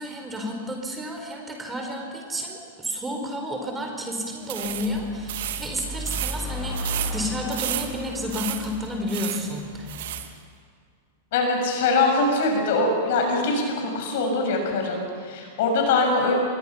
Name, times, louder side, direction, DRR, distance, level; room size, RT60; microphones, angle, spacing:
voice 1, 0.0-10.2, equal, 15° right, 2 dB, 4.8 m, -31 dB
sound 1, 4.4-10.3, right 12 dB, 55° right, 1.8 m, -33 dB
sound 2, 4.6-10.2, left 1 dB, 5° left, 7.0 m, -35 dB
voice 2, 11.3-16.3, left 3 dB, 55° left, 2 dB, 6.5 m, -23 dB
29.5 x 23.0 x 5.9 m, 2.1 s
figure-of-eight pair, 95°, 0 cm